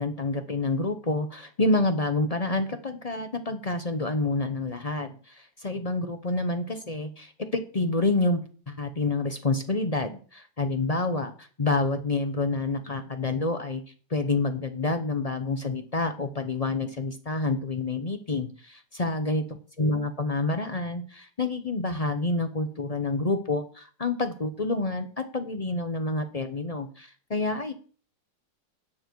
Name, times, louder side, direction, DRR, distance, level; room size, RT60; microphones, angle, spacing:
voice 1, 0.0-8.4 8.7-13.8 14.1-19.4 19.8-27.7, left 2 dB, 40° left, 8 dB, 0.5 m, -28 dB
9.9 x 9.3 x 4.6 m, 0.40 s
omnidirectional pair, 2.0 m